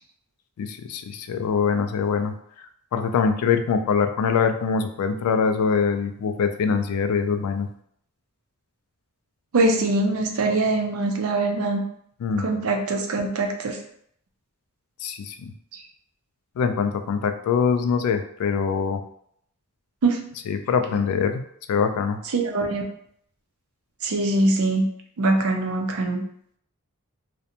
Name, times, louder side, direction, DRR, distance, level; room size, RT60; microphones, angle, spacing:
voice 1, 0.6-2.3 2.9-7.7 12.2-12.6 15.0-15.5 16.6-19.0 20.5-21.4 21.7-22.2, left 6 dB, 75° left, 12 dB, 0.3 m, -23 dB
voice 2, 9.5-11.8 12.4-13.8 15.7-15.8 20.0-20.2 22.2-22.8 24.0-24.9 25.2-26.2, right 2 dB, 70° right, 3 dB, 0.4 m, -23 dB
2.5 x 2.1 x 2.8 m, 0.68 s
head